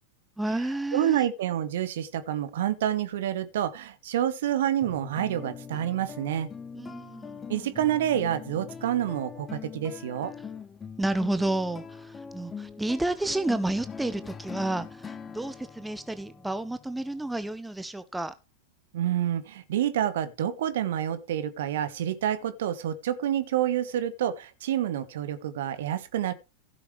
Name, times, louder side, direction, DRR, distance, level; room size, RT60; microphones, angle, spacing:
voice 1, 0.4-1.3 6.7-7.4 11.0-18.3, right 2 dB, 5° right, 0.8 m, -30 dB
voice 2, 0.9-6.5 7.5-10.3 18.9-26.3, right 11 dB, 55° right, 1.5 m, -28 dB
sound 1, 4.8-17.6, left 6 dB, 20° left, 1.0 m, -42 dB
15.5 x 6.9 x 3.2 m
figure-of-eight pair, 90°, 0 cm